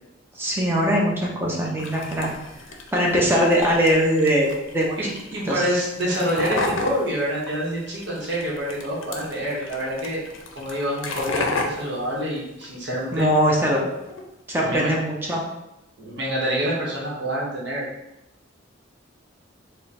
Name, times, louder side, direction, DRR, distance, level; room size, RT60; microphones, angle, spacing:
voice 1, 0.4-2.3 2.9-5.1 5.5-5.6 13.1-13.9 14.5-15.4, equal, 10° right, -3 dB, 0.6 m, -21 dB
sound 1, 1.8-13.2 13.5-14.2, left 3 dB, 75° left, 0.5 m, -33 dB
voice 2, 5.3-10.2 10.6-13.3 14.6-14.9 16.0-17.9, equal, 60° right, -5 dB, 0.9 m, -27 dB
3.5 x 2.1 x 4.1 m, 0.92 s
head